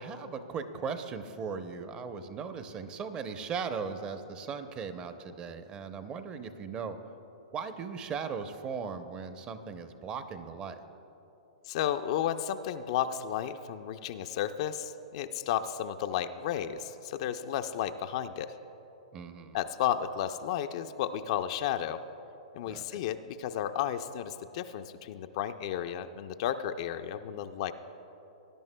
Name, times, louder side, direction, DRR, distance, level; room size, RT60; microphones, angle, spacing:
voice 1, 0.0-7.0 7.5-10.8 19.1-19.6 22.7-23.0, right 5 dB, 25° right, 9 dB, 0.7 m, -38 dB
voice 2, 11.7-18.6 19.5-22.0 22.5-27.7, left 10 dB, 50° left, 9 dB, 0.4 m, -33 dB
19.0 x 10.5 x 2.2 m, 3.0 s
hypercardioid pair, 120°, 4 cm